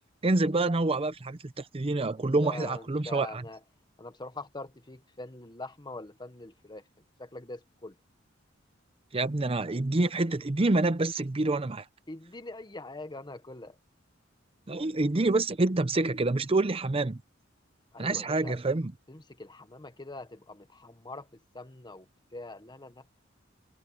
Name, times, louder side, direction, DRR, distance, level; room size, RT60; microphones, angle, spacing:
voice 1, 0.2-3.4 9.1-11.8 14.7-17.2 18.0-18.9, right 2 dB, 30° right, 0.7 m, -27 dB
voice 2, 2.2-3.6 4.0-6.8 7.2-8.0 12.1-13.8 17.9-18.6 19.1-21.3 21.5-23.0, left 2 dB, 25° left, 1.3 m, -43 dB
head